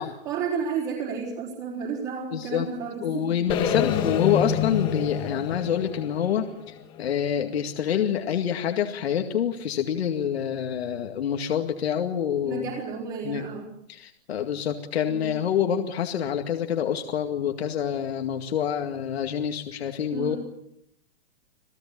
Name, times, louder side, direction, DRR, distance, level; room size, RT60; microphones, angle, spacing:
voice 1, 0.0-3.5 12.4-13.7 15.1-15.3 20.1-20.4, right 6 dB, 25° right, -4 dB, 4.6 m, -32 dB
voice 2, 2.3-2.7 3.0-12.7 13.2-13.4 13.9-20.4, left 9 dB, 70° left, 4 dB, 2.2 m, -27 dB
sound 1, 3.5-7.5, left 8 dB, 15° left, 1.4 m, -28 dB
27.5 x 18.0 x 8.7 m, 0.77 s
hypercardioid pair, 180°, 32 cm